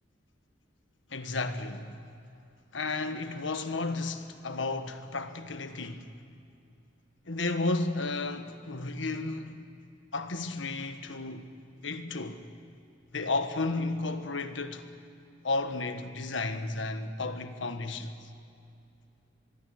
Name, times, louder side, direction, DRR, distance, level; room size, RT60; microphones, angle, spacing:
voice 1, 1.1-1.9 2.7-6.1 7.3-9.6 10.1-11.5 11.8-12.4 13.1-14.8 15.4-18.1, left 3 dB, 85° left, 1.4 m, -33 dB
25.0 x 21.5 x 6.5 m
head